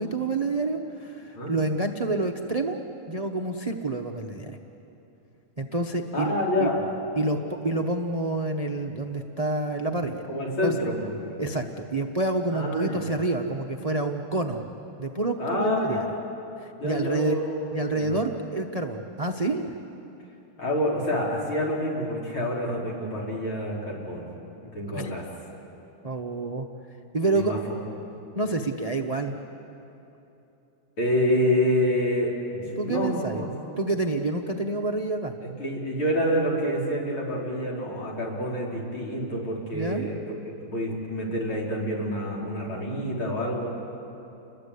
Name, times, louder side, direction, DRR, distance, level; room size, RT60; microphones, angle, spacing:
voice 1, 0.0-2.8 3.1-4.6 5.6-6.3 6.6-6.7 7.2-10.2 10.6-10.7 11.4-14.6 15.0-16.0 16.6-17.4 17.7-19.8 24.6-25.1 26.0-26.7 27.1-27.5 28.4-29.3 32.8-33.4 33.8-35.3 39.7-40.1, right 2 dB, 35° right, 4 dB, 0.5 m, -28 dB
voice 2, 6.1-6.8 10.3-11.1 12.5-13.1 15.4-16.1 16.8-17.6 17.9-18.2 20.6-24.2 24.7-25.2 27.3-27.8 31.0-33.5 35.6-40.2 40.6-43.7, left 1 dB, 70° left, -3 dB, 5.0 m, -27 dB
29.5 x 21.5 x 8.3 m, 3.0 s
omnidirectional pair, 2.4 m